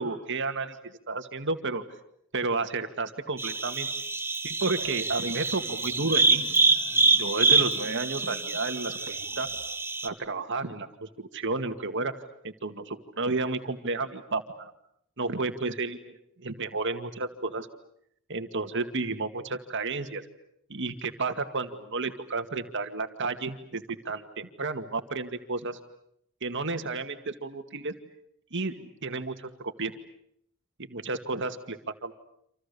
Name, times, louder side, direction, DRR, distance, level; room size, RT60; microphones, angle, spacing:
voice 1, 0.0-1.8 2.3-3.9 4.4-6.4 7.2-9.5 10.0-12.1 12.6-14.7 15.2-17.7 18.3-20.2 20.7-25.8 26.4-27.9 28.5-29.9 30.9-32.1, right 3 dB, 60° right, 7 dB, 2.2 m, -32 dB
sound 1, 3.4-10.1, right 3 dB, 10° right, 1.3 m, -26 dB
sound 2, 4.8-9.8, right 2 dB, 35° right, 3.0 m, -49 dB
28.5 x 27.5 x 7.0 m, 0.71 s
head